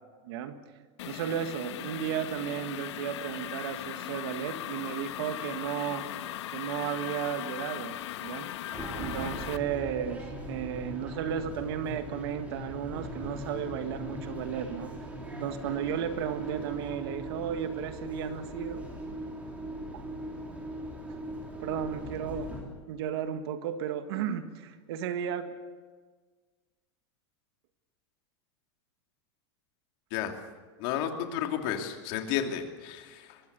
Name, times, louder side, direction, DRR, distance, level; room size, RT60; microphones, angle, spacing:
voice 1, 0.2-0.6 1.0-6.1 6.5-8.5 9.0-10.2 10.5-14.9 15.4-18.8 19.9-20.0 21.6-22.5 22.9-25.5, right 9 dB, 60° right, 8 dB, 1.7 m, -34 dB
sound 1, 1.0-9.6, left 13 dB, 80° left, 1.2 m, -38 dB
sound 2, 8.7-22.6, right 1 dB, 10° right, 3.7 m, -39 dB
voice 2, 30.8-33.4, left 9 dB, 50° left, 4 dB, 2.8 m, -32 dB
23.0 x 22.0 x 6.8 m, 1.4 s
supercardioid pair, 165°, 15 cm